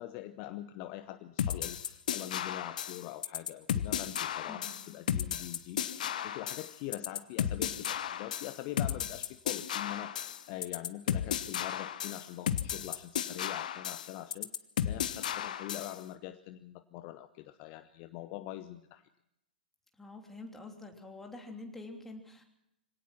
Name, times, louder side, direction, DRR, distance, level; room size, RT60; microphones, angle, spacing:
voice 1, 0.0-14.5 14.8-19.0, left 14 dB, 35° left, 12 dB, 0.9 m, -44 dB
sound 1, 1.4-16.0, left 9 dB, 55° left, 1.1 m, -34 dB
voice 2, 4.5-4.8 20.0-22.4, left 2 dB, 5° left, 3 dB, 3.1 m, -46 dB
25.0 x 18.0 x 6.0 m, 0.82 s
figure-of-eight pair, 110°, 5 cm